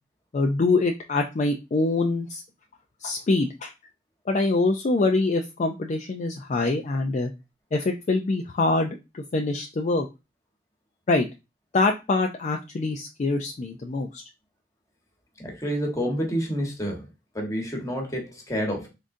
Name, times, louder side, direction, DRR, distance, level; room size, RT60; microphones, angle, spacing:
voice 1, 0.3-2.4 3.0-3.7 4.3-7.3 7.7-10.1 11.1-11.3 11.7-14.2, left 3 dB, 40° left, 4 dB, 0.4 m, -24 dB
voice 2, 15.4-17.1 17.3-18.9, equal, 20° left, 1 dB, 1.2 m, -28 dB
3.7 x 3.7 x 2.6 m, 0.25 s
head